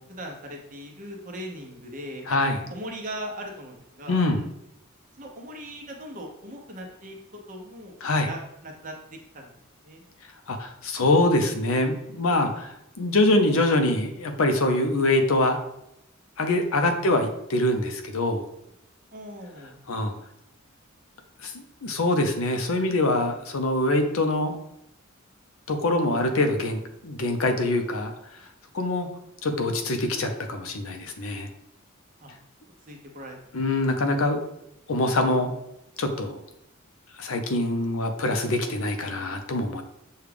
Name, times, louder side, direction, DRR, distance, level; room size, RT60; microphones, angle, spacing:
voice 1, 0.0-2.4 2.7-4.2 5.2-7.2 7.5-9.0 9.3-9.5 9.8-10.0 16.9-17.2 19.1-19.8 32.2-32.3 32.9-33.3, right 1 dB, 40° right, 1 dB, 0.8 m, -39 dB
voice 2, 2.3-2.6 4.1-4.5 8.0-8.3 10.5-15.6 16.4-18.4 19.9-20.1 21.4-24.5 25.7-28.1 28.7-29.1 29.4-31.5 33.5-34.4 34.9-35.5 36.0-36.4 37.2-39.8, left 2 dB, 80° left, 6 dB, 0.6 m, -24 dB
6.5 x 2.4 x 3.4 m, 0.81 s
head